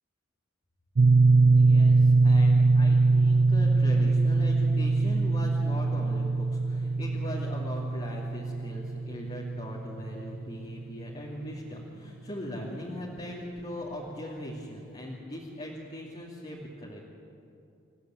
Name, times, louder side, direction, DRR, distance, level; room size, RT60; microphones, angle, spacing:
sound 1, 1.0-10.9, right 3 dB, 45° right, 0.5 m, -22 dB
voice 1, 1.5-17.1, equal, 30° left, -4 dB, 2.7 m, -39 dB
27.5 x 15.5 x 9.2 m, 2.7 s
head